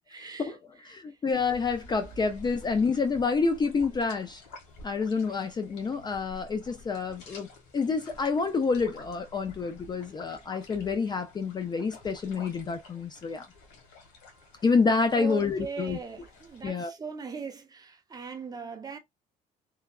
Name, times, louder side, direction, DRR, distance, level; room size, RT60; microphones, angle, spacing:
voice 1, 0.1-1.2 14.3-14.5 15.1-19.0, right 5 dB, 20° right, 0.7 m, -40 dB
voice 2, 0.9-4.4 4.8-13.5 14.6-16.0 16.6-16.9, left 4 dB, 25° left, 0.4 m, -28 dB
sound 1, 1.3-16.6, left 2 dB, 90° left, 1.2 m, -50 dB
3.1 x 2.3 x 2.2 m
cardioid pair, 110°, 17 cm